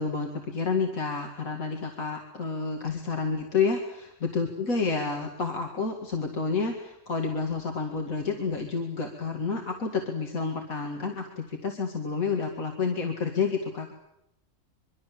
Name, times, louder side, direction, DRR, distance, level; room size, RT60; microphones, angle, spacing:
voice 1, 0.0-13.9, left 4 dB, 80° left, 3 dB, 2.6 m, -29 dB
25.0 x 23.5 x 7.5 m, 0.83 s
omnidirectional pair, 1.4 m